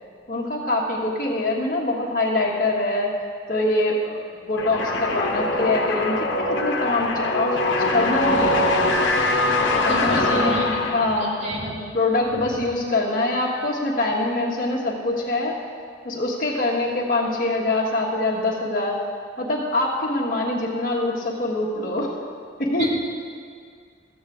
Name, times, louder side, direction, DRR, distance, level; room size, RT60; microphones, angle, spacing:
voice 1, 0.3-3.1 3.5-8.7 9.8-10.6 10.9-11.4 11.9-15.6 16.0-19.0 19.4-22.1 22.6-22.8, left 2 dB, 50° left, -4 dB, 1.5 m, -24 dB
sound 1, 4.6-11.3, left 2 dB, 80° left, 1.1 m, -22 dB
voice 2, 9.9-10.9 11.4-11.8 22.8-22.9, equal, 40° right, -4 dB, 2.0 m, -27 dB
13.5 x 8.4 x 3.7 m, 2.1 s
head